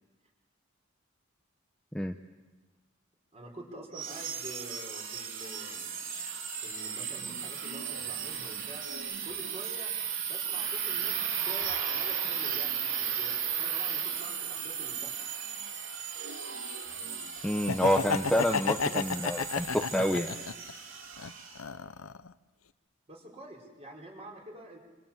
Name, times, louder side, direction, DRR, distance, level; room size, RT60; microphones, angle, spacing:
voice 1, 3.3-5.9 6.6-8.9 9.2-9.9 10.3-15.1 23.1-24.8, right 1 dB, 30° right, 0 dB, 4.9 m, -47 dB
sound 1, 3.9-21.6, right 7 dB, 70° right, 3.3 m, -35 dB
voice 2, 17.4-20.3, equal, 5° left, 4 dB, 0.8 m, -28 dB
Laughter, 17.5-20.7 21.2-22.3, left 5 dB, 90° left, 0.9 m, -32 dB
27.5 x 26.5 x 7.4 m, 1.2 s
head